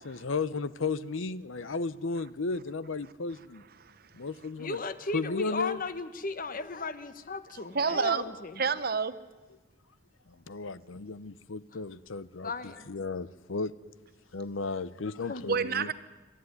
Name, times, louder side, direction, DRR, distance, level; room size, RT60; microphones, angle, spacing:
voice 1, 0.0-3.6 4.1-4.8 5.1-5.8 10.5-13.7 14.3-15.9, left 4 dB, 80° left, 16 dB, 0.8 m, -34 dB
voice 2, 4.6-8.6 11.7-11.8 12.4-12.8 15.2-15.5, left 3 dB, 45° left, 12 dB, 1.2 m, -36 dB
voice 3, 7.7-8.2 8.6-9.2 15.5-15.9, right 5 dB, 50° right, 13 dB, 0.9 m, -28 dB
27.0 x 13.0 x 9.8 m, 1.2 s
head